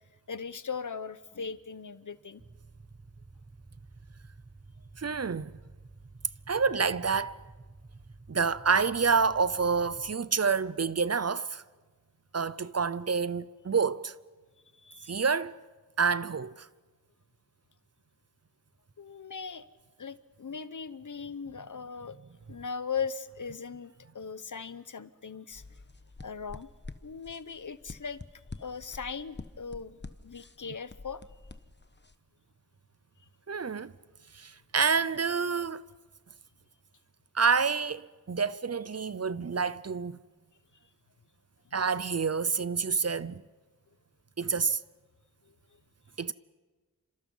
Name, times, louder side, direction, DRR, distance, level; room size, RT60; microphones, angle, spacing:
voice 1, 0.3-2.4 14.7-15.2 19.0-19.6 20.0-22.2 22.5-25.6 26.2-26.7 27.0-28.2 28.6-31.2, left 6 dB, 65° left, 0.9 m, -39 dB
sound 1, 2.4-10.1, right 3 dB, 25° right, 0.9 m, -52 dB
voice 2, 5.0-5.5 6.5-7.4 8.3-11.6 12.3-14.2 15.1-15.6 16.0-16.7 33.5-33.9 34.3-35.8 37.3-40.2 41.7-43.4 44.4-44.8 46.2-46.3, right 5 dB, 50° right, 0.7 m, -28 dB
sound 2, 25.5-32.1, left 3 dB, 30° left, 1.1 m, -48 dB
29.5 x 26.0 x 5.5 m
wide cardioid pair, 55°, 33 cm